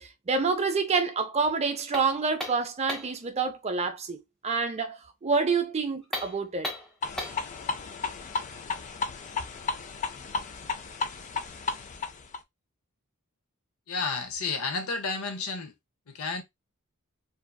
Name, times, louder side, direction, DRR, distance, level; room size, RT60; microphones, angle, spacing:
voice 1, 0.0-4.2 4.4-6.7, right 4 dB, 30° right, 0.5 m, -27 dB
sound 1, 1.9-3.2 6.0-7.5, left 1 dB, 5° left, 0.8 m, -36 dB
sound 2, 7.0-12.4, left 4 dB, 35° left, 0.4 m, -34 dB
voice 2, 13.9-15.7 16.1-16.4, left 4 dB, 75° left, 0.6 m, -31 dB
2.6 x 2.4 x 2.2 m
head